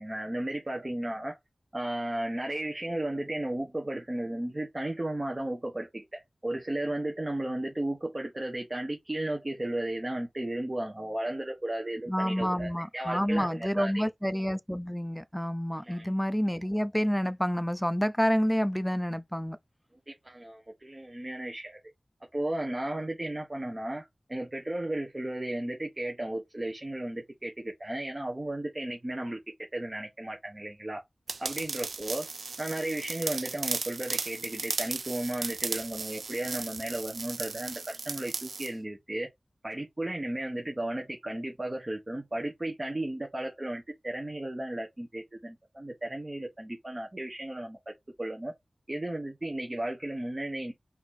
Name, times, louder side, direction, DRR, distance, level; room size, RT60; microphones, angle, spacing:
voice 1, 0.0-1.4 1.7-14.1 15.8-16.1 20.1-21.8 22.3-29.4 29.7-31.0 31.4-32.3 32.6-39.3 39.6-47.8 48.2-48.5 48.9-50.7, right 1 dB, 30° right, 1.2 m, -34 dB
voice 2, 12.1-19.6, equal, ahead, 0.5 m, -29 dB
sound 1, 31.3-38.7, right 4 dB, 90° right, 0.5 m, -36 dB
4.3 x 2.8 x 4.2 m
wide cardioid pair, 85°, 0 cm